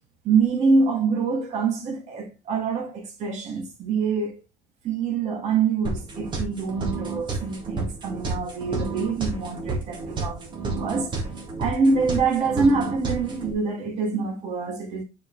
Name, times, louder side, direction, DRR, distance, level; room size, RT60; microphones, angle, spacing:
voice 1, 0.2-4.3 4.8-11.2 11.6-15.0, right 4 dB, 45° right, 2.5 m, -25 dB
sound 1, 5.8-13.5, right 3 dB, 30° right, 1.9 m, -31 dB
8.7 x 4.9 x 3.3 m
cardioid pair, 170°, 16 cm